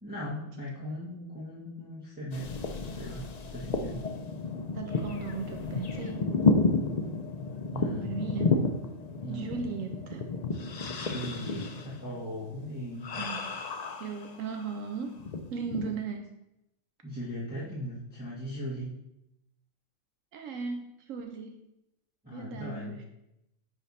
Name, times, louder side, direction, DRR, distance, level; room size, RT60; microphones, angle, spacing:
voice 1, 0.0-2.5 3.0-3.2 3.5-4.0 7.7-8.1 9.2-9.5 10.9-13.2 17.0-19.0 22.2-23.0, equal, 5° right, -10 dB, 1.5 m, -38 dB
sound 1, 2.3-14.7 15.2-16.0, left 3 dB, 60° left, 0.4 m, -31 dB
voice 2, 4.7-6.3 8.0-8.6 9.3-10.3 13.2-13.5 14.0-15.2 15.5-16.3 20.3-21.6 22.3-23.0, right 5 dB, 75° right, 4 dB, 1.0 m, -37 dB
9.1 x 3.4 x 4.2 m, 0.86 s
omnidirectional pair, 1.4 m